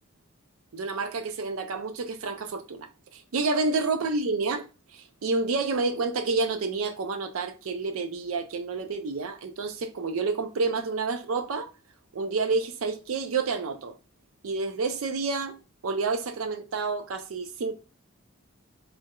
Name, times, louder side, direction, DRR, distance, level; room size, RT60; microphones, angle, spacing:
voice 1, 0.7-4.6 4.9-11.7 12.1-14.0 14.4-15.6 15.8-17.7, right 4 dB, 80° right, 0.5 m, -29 dB
3.4 x 2.2 x 2.9 m
head